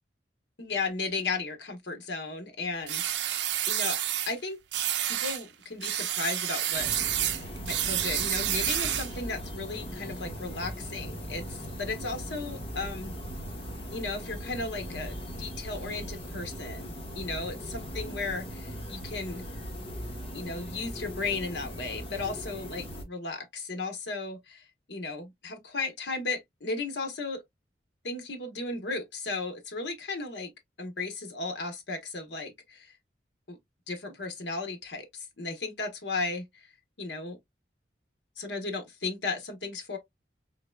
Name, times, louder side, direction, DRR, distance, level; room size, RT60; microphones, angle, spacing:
voice 1, 0.6-3.0 3.7-4.6 5.1-6.9 7.3-13.1 13.9-19.4 20.3-27.4 28.0-30.5 30.8-32.9 33.5-33.6 33.9-36.4 37.0-37.4 38.4-40.0, left 3 dB, 75° left, 1.1 m, -35 dB
sound 1, 2.9-4.3 4.7-5.4 5.8-9.2, right 11 dB, 70° right, 0.5 m, -29 dB
sound 2, 6.7-23.0, equal, 30° left, 1.1 m, -39 dB
3.8 x 3.2 x 2.2 m
head